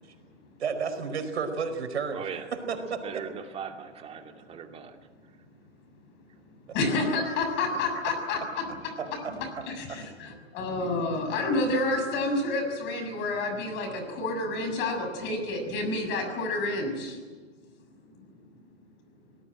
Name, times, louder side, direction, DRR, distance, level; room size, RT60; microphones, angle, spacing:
voice 1, 0.6-3.2 9.2-10.0, right 5 dB, 70° right, 7 dB, 4.9 m, -33 dB
voice 2, 2.1-2.5 3.0-5.0, right 7 dB, 15° right, 4 dB, 2.6 m, -39 dB
voice 3, 6.7-8.6 9.3-17.4, left 2 dB, 30° left, 5 dB, 6.7 m, -29 dB
24.0 x 19.5 x 9.0 m, 1.4 s
hypercardioid pair, 125°, 34 cm